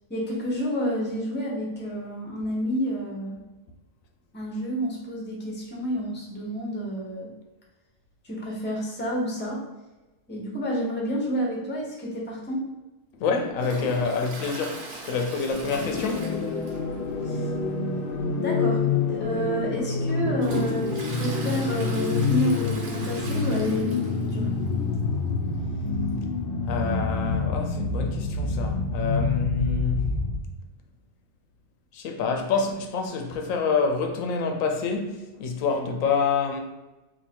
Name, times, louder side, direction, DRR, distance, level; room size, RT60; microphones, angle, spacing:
voice 1, 0.1-3.4 4.3-7.3 8.2-9.6 10.3-12.7 17.2-17.5 18.3-24.5, equal, 10° left, 0.7 m, -29 dB
voice 2, 13.1-16.3 26.7-30.1 31.9-36.6, left 5 dB, 85° left, 1.0 m, -27 dB
Toilet flush, 13.6-17.0 17.3-17.4 17.8-17.9 18.8-18.9 19.4-24.3 24.7-24.8 24.9-25.0 26.1-26.2, right 2 dB, 80° right, 1.2 m, -38 dB
sound 1, 15.5-30.5, left 4 dB, 60° left, 0.6 m, -27 dB
2.8 x 2.7 x 4.2 m
omnidirectional pair, 1.4 m